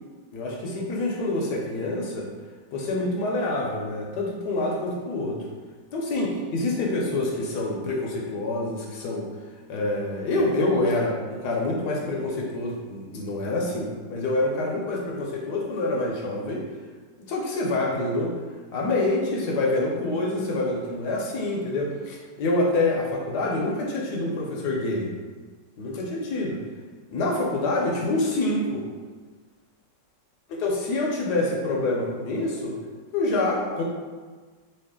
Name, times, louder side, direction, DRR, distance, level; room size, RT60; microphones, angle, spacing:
voice 1, 0.3-2.3 2.7-5.4 5.9-9.3 9.7-16.6 17.3-18.3 18.7-25.1 25.8-26.6 27.1-28.9 30.6-32.7 33.1-33.8, left 2 dB, 70° left, -2 dB, 1.1 m, -26 dB
3.2 x 2.7 x 3.5 m, 1.4 s
omnidirectional pair, 2.0 m